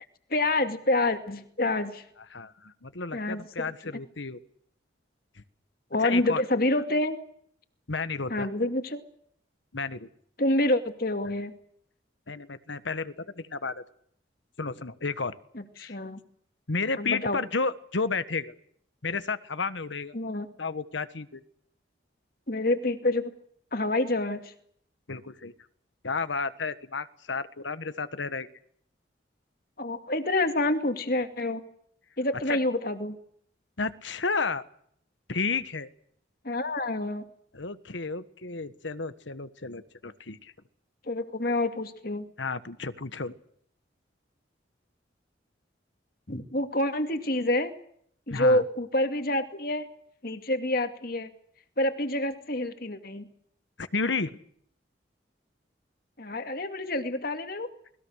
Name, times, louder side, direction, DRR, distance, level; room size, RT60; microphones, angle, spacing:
voice 1, 0.3-2.0 3.1-3.7 5.9-7.2 8.3-9.0 10.4-11.5 15.5-16.2 17.0-17.4 20.1-20.5 22.5-23.3 23.7-24.5 29.8-31.6 32.2-33.2 36.4-37.2 41.1-42.3 46.3-47.7 48.3-49.9 50.2-51.3 51.8-53.3 56.2-57.7, left 1 dB, 50° left, 7 dB, 2.4 m, -27 dB
voice 2, 2.3-4.4 6.0-6.4 7.9-8.5 9.7-10.1 12.3-13.8 14.6-15.3 15.8-16.0 16.7-18.5 19.0-20.1 20.6-21.4 25.1-25.5 26.0-28.5 32.5-32.6 33.8-34.6 35.3-35.9 37.5-40.5 42.4-43.3 48.3-48.6 53.8-54.4, left 4 dB, 85° left, 12 dB, 1.4 m, -32 dB
29.0 x 20.5 x 6.5 m, 0.66 s
head